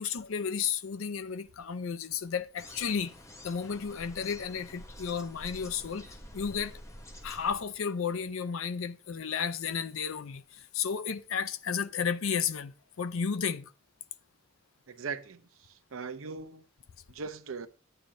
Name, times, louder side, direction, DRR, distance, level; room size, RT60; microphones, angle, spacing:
voice 1, 0.0-3.1 3.4-6.8 7.2-13.7, left 6 dB, 70° left, 0.5 m, -33 dB
windy garden, 2.6-7.6, equal, 15° left, 0.7 m, -48 dB
voice 2, 14.9-15.4 15.9-16.6 17.1-17.7, right 5 dB, 70° right, 0.6 m, -39 dB
10.0 x 8.8 x 2.6 m
head